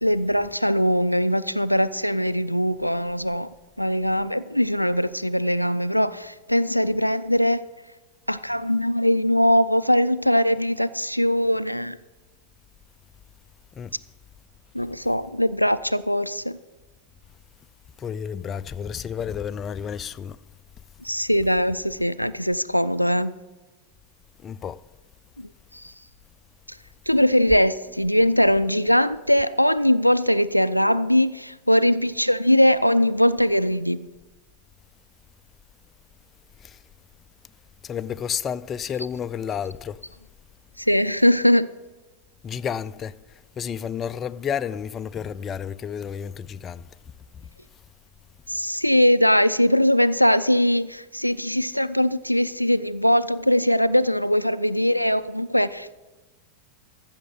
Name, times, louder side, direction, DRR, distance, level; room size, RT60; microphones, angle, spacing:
voice 1, 0.0-3.5 3.8-7.6 8.3-12.0 14.7-16.6 21.0-23.3 25.4-25.9 27.1-34.1 40.8-41.7 48.5-56.0, equal, 90° left, 0.4 m, -21 dB
voice 2, 18.0-20.4 24.4-24.8 36.6-36.8 37.8-40.0 42.4-43.2 43.6-46.8 47.4-47.5, left 8 dB, 25° left, 0.4 m, -31 dB
14.5 x 6.5 x 7.8 m
figure-of-eight pair, 90°, 0 cm